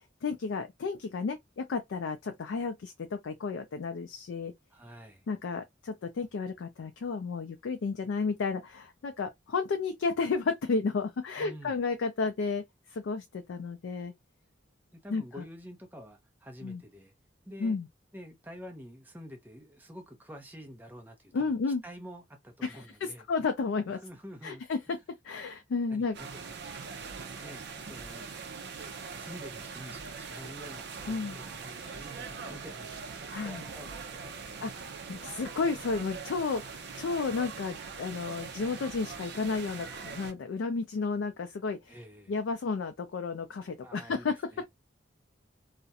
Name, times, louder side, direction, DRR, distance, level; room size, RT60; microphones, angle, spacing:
voice 1, 0.2-4.5 5.3-12.6 12.9-14.1 15.1-15.4 16.6-16.8 17.6-17.9 21.3-21.8 22.6-24.0 24.4-25.0 25.2-26.2 31.1-31.4 33.3-33.6 34.6-42.0 42.3-44.4, left 4 dB, 75° left, 0.4 m, -32 dB
voice 2, 4.7-5.3 11.4-11.8 14.9-17.1 17.5-17.8 18.1-21.4 21.8-23.2 23.9-25.0 25.9-26.6 27.1-28.4 29.2-34.8 41.9-42.4 43.8-44.6, equal, 10° right, 0.6 m, -48 dB
sound 1, 26.1-40.3, right 5 dB, 60° right, 0.5 m, -42 dB
2.4 x 2.1 x 2.7 m
head